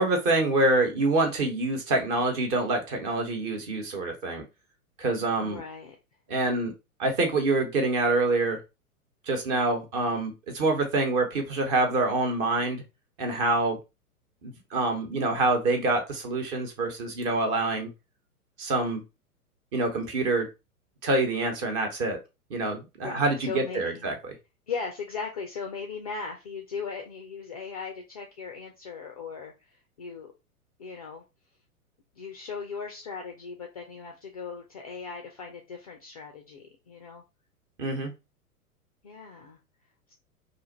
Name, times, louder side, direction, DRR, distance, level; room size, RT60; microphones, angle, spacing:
voice 1, 0.0-4.4 5.0-5.6 6.3-6.7 7.0-8.6 9.3-12.8 13.2-13.8 14.4-17.9 18.6-19.0 19.7-20.5 21.0-22.2 22.5-24.1 37.8-38.1, right 2 dB, 35° right, 4 dB, 1.1 m, -26 dB
voice 2, 5.4-6.0 23.0-24.0 24.7-30.3 30.8-31.2 32.1-37.2 39.0-39.6 40.1-40.2, left 5 dB, 30° left, 2 dB, 0.3 m, -38 dB
2.6 x 2.4 x 4.0 m, 0.26 s
figure-of-eight pair, 105°, 44 cm